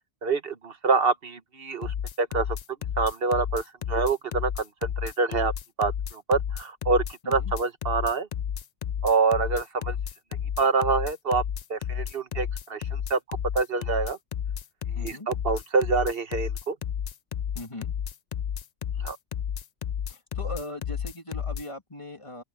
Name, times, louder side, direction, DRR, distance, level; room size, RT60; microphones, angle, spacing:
voice 1, 0.2-2.5 3.0-4.7 5.0-5.5 5.8-8.3 9.0-10.0 10.6-11.4 11.7-13.2 13.5-14.2 14.9-16.8 19.0-19.2, right 4 dB, 60° right, 1.5 m, -26 dB
sound 1, 1.8-21.6, left 9 dB, 50° left, 0.5 m, -31 dB
voice 2, 14.9-15.3 17.5-17.9 20.1-22.4, left 1 dB, 30° left, 2.9 m, -39 dB
open air
omnidirectional pair, 1.1 m